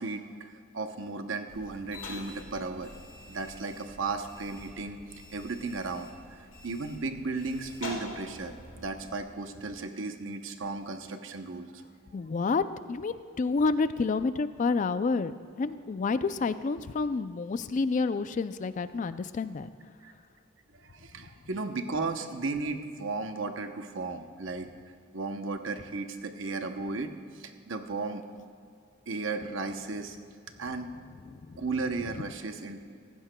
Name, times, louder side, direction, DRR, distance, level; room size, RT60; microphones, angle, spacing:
voice 1, 0.0-2.9 3.3-5.0 5.3-11.8 20.0-20.1 20.8-24.7 25.1-28.2 29.1-30.2 30.6-30.9 31.6-32.9, right 3 dB, 65° right, 7 dB, 0.8 m, -35 dB
sound 1, 1.5-9.2, left 2 dB, 75° left, 1.7 m, -46 dB
voice 2, 12.1-12.6 12.9-19.7 31.3-31.6, left 4 dB, 40° left, 13 dB, 0.3 m, -29 dB
15.5 x 15.0 x 2.2 m, 2.3 s
head